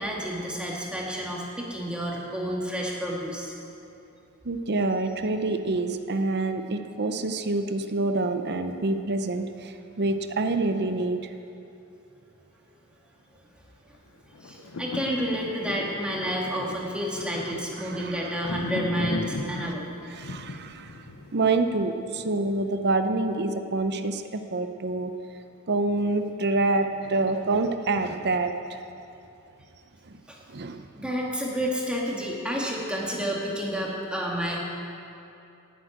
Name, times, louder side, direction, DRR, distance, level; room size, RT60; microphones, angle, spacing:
voice 1, 0.0-3.5 14.4-19.9 30.3-30.4 30.9-34.6, equal, 5° right, -3 dB, 2.0 m, -30 dB
voice 2, 4.4-11.3 17.4-18.4 19.5-19.7 20.1-21.0 21.3-25.1 25.7-28.8 30.0-30.2 30.5-31.1, right 2 dB, 50° right, 8 dB, 0.7 m, -27 dB
sound 1, 14.3-22.6 23.1-23.2, left 2 dB, 65° left, 0.7 m, -37 dB
11.0 x 8.1 x 9.0 m, 2.7 s
head